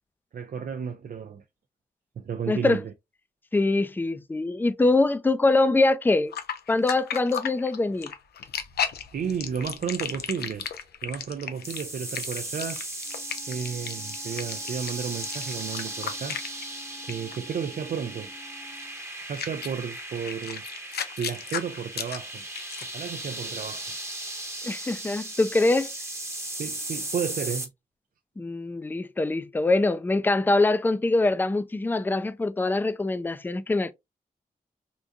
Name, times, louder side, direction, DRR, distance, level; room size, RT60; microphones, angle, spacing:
voice 1, 0.3-1.4 2.2-2.9 9.1-10.7 11.0-12.8 13.5-16.4 17.0-18.3 19.2-20.6 21.2-22.4 22.8-23.9 26.6-27.7, right 7 dB, 65° right, 0.4 m, -33 dB
voice 2, 2.5-2.8 3.5-6.3 6.7-8.1 24.6-25.9 28.4-33.9, left 2 dB, 10° left, 0.4 m, -23 dB
sound 1, 6.3-16.8 17.1-17.4 18.8-18.9 19.3-23.0, left 8 dB, 90° left, 0.5 m, -34 dB
sound 2, 11.6-27.7, right 1 dB, 15° right, 0.9 m, -37 dB
Wind instrument woodwind instrument, 13.0-19.1, left 2 dB, 50° left, 1.0 m, -51 dB
3.7 x 2.5 x 2.3 m
cardioid pair, 50°, 16 cm